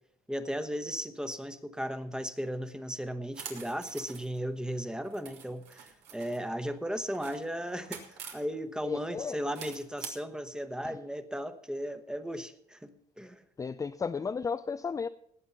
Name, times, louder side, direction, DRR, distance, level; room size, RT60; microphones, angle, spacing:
voice 1, 0.3-12.9 13.2-13.4, equal, 5° right, 10 dB, 1.1 m, -36 dB
sound 1, 3.3-4.4 5.1-6.4 7.0-8.4 9.6-10.1, right 7 dB, 85° right, 2.8 m, -45 dB
voice 2, 8.8-9.4 10.8-11.0 13.6-15.1, left 5 dB, 20° left, 10 dB, 0.4 m, -34 dB
18.5 x 7.7 x 5.6 m, 0.69 s
cardioid pair, 110°, 17 cm